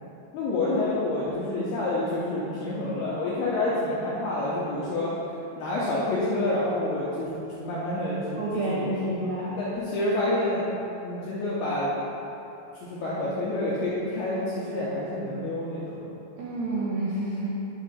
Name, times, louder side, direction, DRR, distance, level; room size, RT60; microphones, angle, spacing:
voice 1, 0.3-5.1 5.6-8.4 8.6-9.3 9.6-10.7 11.0-11.9 12.8-16.0, left 2 dB, 80° left, -8 dB, 2.3 m, -28 dB
voice 2, 8.4-9.6 16.4-17.6, right 1 dB, 80° right, -5 dB, 2.4 m, -29 dB
9.0 x 3.9 x 5.3 m, 2.9 s
omnidirectional pair, 5.7 m